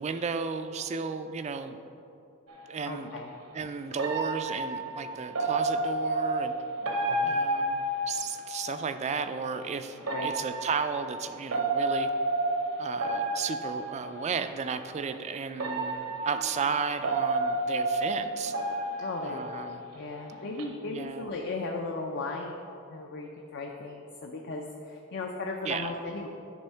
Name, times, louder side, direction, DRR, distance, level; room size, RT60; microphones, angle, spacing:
voice 1, 0.0-1.8 2.7-3.1 3.5-6.5 7.2-12.1 12.8-18.5 19.2-19.8 20.9-21.3 25.6-25.9, right 5 dB, 30° right, 9 dB, 0.3 m, -34 dB
sound 1, 2.5-2.6 4.0-8.7 10.0-14.2 15.0-15.1 15.6-20.0 20.3-20.6, right 2 dB, 75° right, 0.9 m, -31 dB
voice 2, 2.8-3.3 7.1-7.3 10.1-10.3 19.0-19.4 19.9-22.6 22.9-26.3, left 3 dB, 55° left, 1 dB, 0.5 m, -36 dB
10.0 x 3.5 x 5.6 m, 2.8 s
head